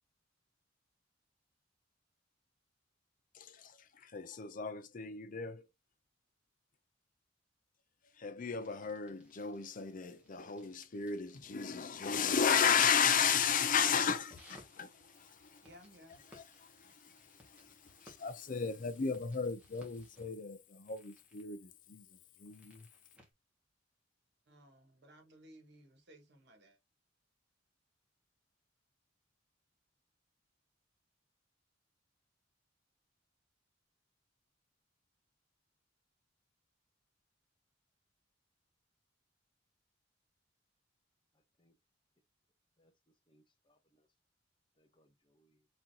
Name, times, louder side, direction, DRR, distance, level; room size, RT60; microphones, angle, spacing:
voice 1, 3.3-5.7 8.1-15.7 16.3-22.9, left 7 dB, 45° left, 0.6 m, -34 dB
sound 1, 8.6-23.3, left 1 dB, 5° right, 1.7 m, -64 dB
voice 2, 15.6-16.2 24.5-26.8, equal, 60° right, 1.6 m, -59 dB
voice 3, 41.3-41.8 42.8-44.1 44.8-45.7, equal, 25° left, 1.0 m, -73 dB
4.3 x 3.8 x 2.8 m
head